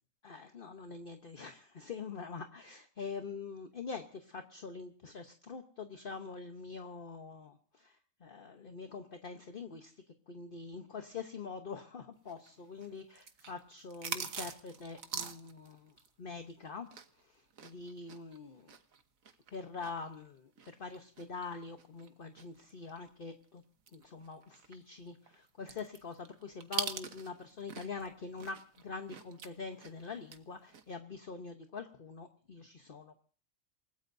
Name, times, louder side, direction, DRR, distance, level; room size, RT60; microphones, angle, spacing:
voice 1, 0.2-7.9 8.2-9.9 10.3-15.9 16.2-16.9 17.6-18.7 19.5-20.5 20.8-23.6 23.9-33.1, left 4 dB, 45° left, 6 dB, 1.1 m, -44 dB
sound 1, 12.3-17.2 17.5-23.1 23.4-23.5 23.9-28.1 28.4-30.4 30.7-30.9, right 6 dB, 85° right, 1.6 m, -43 dB
28.5 x 17.0 x 2.7 m, 0.43 s
omnidirectional pair, 1.4 m